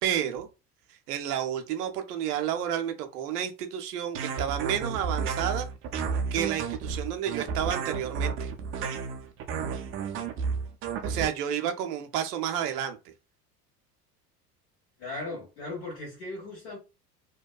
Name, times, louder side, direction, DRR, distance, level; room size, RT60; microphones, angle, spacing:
voice 1, 0.0-0.5 1.1-5.7 6.3-8.5 11.0-13.1, right 10 dB, 70° right, 0.6 m, -30 dB
sound 1, 4.1-11.3, right 5 dB, 30° right, 0.4 m, -32 dB
voice 2, 15.0-16.8, left 2 dB, 65° left, 1.4 m, -37 dB
2.7 x 2.2 x 2.2 m
figure-of-eight pair, 75°, 48 cm